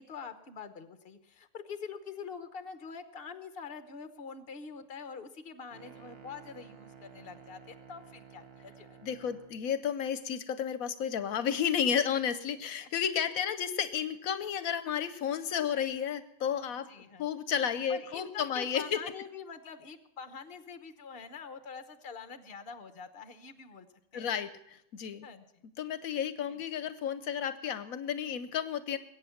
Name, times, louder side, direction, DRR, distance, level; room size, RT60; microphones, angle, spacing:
voice 1, 0.0-9.0 12.8-12.9 13.4-13.5 16.7-17.3 17.9-23.9 24.1-24.3 25.2-25.7 26.4-26.6, left 6 dB, 45° left, 10 dB, 1.3 m, -45 dB
sound 1, 5.7-9.6, right 7 dB, 45° right, 1.3 m, -53 dB
voice 2, 9.0-16.9 17.2-19.0 24.1-25.3 25.8-29.0, left 8 dB, 80° left, 13 dB, 1.2 m, -32 dB
21.0 x 8.7 x 7.1 m, 0.80 s
omnidirectional pair, 1.5 m